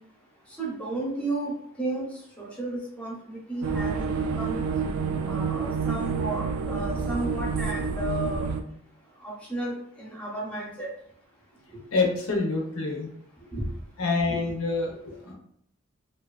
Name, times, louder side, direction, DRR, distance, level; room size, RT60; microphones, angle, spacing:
voice 1, 0.6-1.5 1.8-2.1 2.4-4.6 5.3-8.5 9.2-10.9 13.5-13.7 14.3-14.4, right 1 dB, 5° left, -4 dB, 0.6 m, -33 dB
sound 1, 3.6-8.6, right 5 dB, 80° right, 0.3 m, -28 dB
voice 2, 11.9-13.1 14.0-15.3, left 3 dB, 80° left, 1 dB, 0.6 m, -27 dB
2.6 x 2.2 x 2.3 m, 0.69 s
head